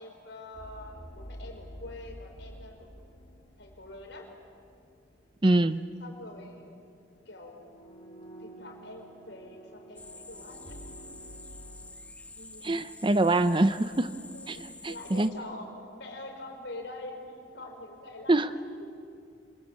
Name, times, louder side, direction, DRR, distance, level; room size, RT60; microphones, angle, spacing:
voice 1, 0.0-3.0 3.6-4.3 6.0-6.7 7.3-7.9 8.4-11.4 12.3-12.7 14.3-18.9, left 2 dB, 60° left, 3 dB, 5.1 m, -45 dB
sound 1, 0.5-5.4 5.7-5.9 7.3-11.9, equal, 30° left, 3.3 m, -49 dB
voice 2, 5.4-5.8 12.6-14.1 14.5-14.6 14.8-15.3 18.3-18.5, right 2 dB, 25° right, 13 dB, 0.6 m, -24 dB
sound 2, 10.0-15.3, left 2 dB, 5° left, 1.1 m, -48 dB
27.0 x 26.0 x 8.6 m, 2.4 s
head